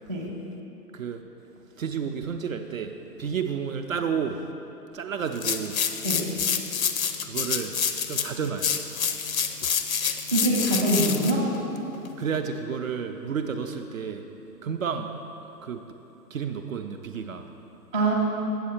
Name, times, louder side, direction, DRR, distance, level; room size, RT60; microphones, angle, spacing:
voice 1, 1.8-4.4 4.9-5.8 7.2-7.8 8.1-8.7 12.2-14.2 14.6-15.1 15.6-15.8 16.3-17.5, right 6 dB, 55° right, 6 dB, 0.5 m, -31 dB
sound 1, 5.3-12.4, left 7 dB, 55° left, 0.6 m, -28 dB
voice 2, 10.3-11.5 17.9-18.1, right 1 dB, 10° right, -9 dB, 0.5 m, -24 dB
8.0 x 6.7 x 4.3 m, 2.9 s
figure-of-eight pair, 125°, 49 cm